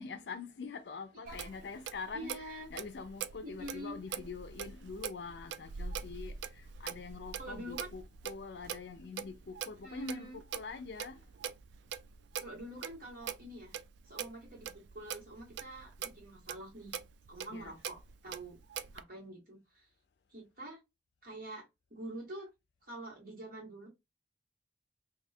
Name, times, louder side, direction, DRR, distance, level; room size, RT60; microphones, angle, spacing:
voice 1, 0.0-11.3 17.5-17.7, left 4 dB, 65° left, 0.4 m, -44 dB
Clock, 1.3-19.0, right 7 dB, 75° right, 0.3 m, -44 dB
voice 2, 2.1-2.7 3.4-4.0 7.4-7.9 9.8-10.4 12.4-13.7 14.0-17.0 17.3-18.6 18.9-19.9 20.3-20.8 21.2-22.5 22.8-23.9, right 1 dB, 50° right, 1.5 m, -46 dB
2.7 x 2.4 x 4.1 m
head